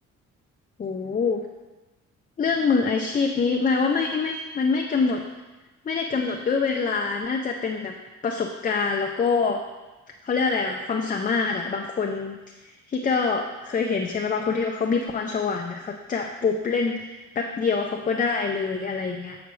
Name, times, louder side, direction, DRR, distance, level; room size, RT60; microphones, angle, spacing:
voice 1, 0.8-1.4 2.4-5.2 5.9-7.9 8.2-9.6 10.2-12.4 12.9-19.4, left 4 dB, 30° left, 2 dB, 0.5 m, -25 dB
8.2 x 4.9 x 3.1 m, 1.2 s
cardioid pair, 90°, 30 cm